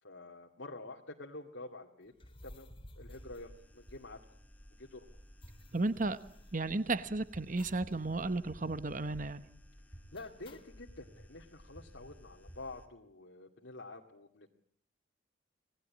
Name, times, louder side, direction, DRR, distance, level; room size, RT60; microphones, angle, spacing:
voice 1, 0.0-2.1 2.4-2.7 3.0-4.2 4.8-5.1 6.8-6.9 9.9-14.5, left 2 dB, 80° left, 2 dB, 2.3 m, -48 dB
sound 1, 2.1-4.4 4.7-4.8 5.0-7.1 7.6-8.0 8.3-8.4 8.7-9.2 10.1-10.9, left 1 dB, 30° left, 2.2 m, -56 dB
sound 2, 3.1-12.9, equal, 10° left, 2.2 m, -55 dB
voice 2, 5.7-6.2 6.5-9.4, right 2 dB, 45° right, 12 dB, 1.1 m, -33 dB
27.5 x 19.5 x 8.6 m, 0.67 s
head